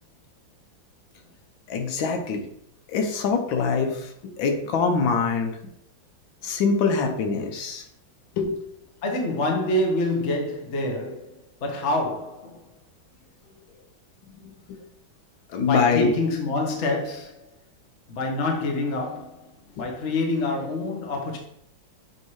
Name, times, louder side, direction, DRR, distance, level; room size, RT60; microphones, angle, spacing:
voice 1, 1.7-2.4 2.9-4.0 4.4-5.5 6.4-7.8 8.4-8.5 14.4-14.8 15.5-16.1 19.8-19.9, left 5 dB, 80° left, 1.6 m, -24 dB
voice 2, 9.0-12.6 15.6-17.4 18.1-19.5 19.7-21.4, left 2 dB, 45° left, 1.1 m, -27 dB
7.3 x 2.8 x 4.6 m
omnidirectional pair, 2.1 m